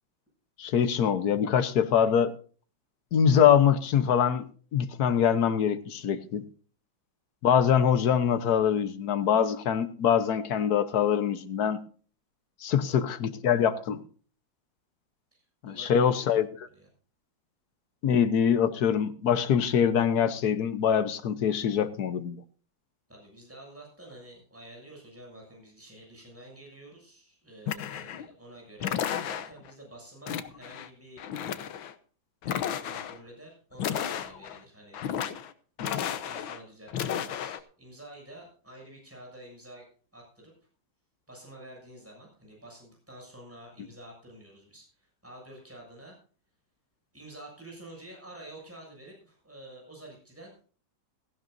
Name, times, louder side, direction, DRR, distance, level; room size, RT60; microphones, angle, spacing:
voice 1, 0.6-2.3 3.1-4.5 4.7-6.4 7.4-11.8 12.6-14.0 15.6-16.5 18.0-22.4 35.8-35.9, left 8 dB, 55° left, 1.4 m, -24 dB
voice 2, 12.8-13.7 15.3-16.9 23.1-31.7 32.4-35.0 35.8-39.9 40.1-40.5 41.3-46.2 47.1-50.7, right 1 dB, 5° right, 7.0 m, -49 dB
sound 1, 27.7-28.3 28.8-29.7 30.3-30.9 31.2-31.9 32.4-33.2 33.8-34.6 34.9-35.5 35.8-36.6 36.9-37.6, left 9 dB, 85° left, 1.7 m, -33 dB
17.0 x 15.5 x 2.6 m
omnidirectional pair, 2.1 m